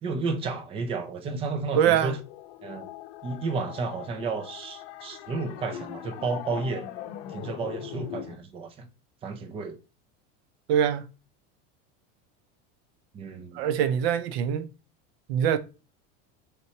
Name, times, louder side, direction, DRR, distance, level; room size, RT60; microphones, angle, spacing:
voice 1, 0.0-2.2 2.6-2.9 3.2-6.9 7.3-8.9 9.2-9.8 13.1-13.7, right 4 dB, 20° right, 0.5 m, -32 dB
sound 1, 1.8-8.4, left 11 dB, 65° left, 0.8 m, -41 dB
voice 2, 1.8-2.2 10.7-11.0 13.5-14.7 15.3-15.6, right 9 dB, 75° right, 0.6 m, -23 dB
4.4 x 4.3 x 2.7 m
cardioid pair, 160°, 31 cm